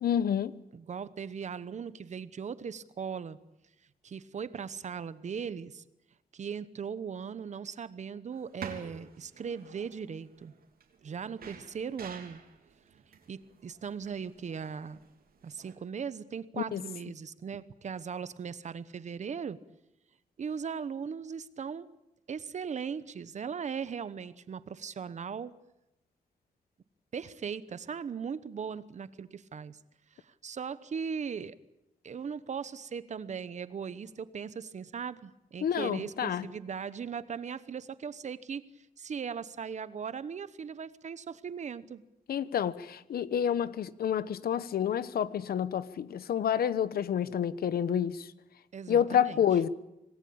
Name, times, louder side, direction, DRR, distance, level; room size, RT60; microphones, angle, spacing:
voice 1, 0.0-0.6 16.6-16.8 35.6-36.5 42.3-48.3 48.9-49.7, left 9 dB, 90° left, 1.0 m, -29 dB
voice 2, 0.7-3.4 4.0-5.8 6.3-10.5 11.0-12.4 13.3-15.0 15.4-19.6 20.4-21.9 22.3-25.5 27.1-29.8 30.1-31.5 32.0-42.0 48.7-49.4, right 6 dB, 50° right, 1.0 m, -38 dB
sound 1, 8.3-15.7, right 6 dB, 85° right, 3.2 m, -50 dB
26.0 x 19.0 x 8.7 m
wide cardioid pair, 145°, 15 cm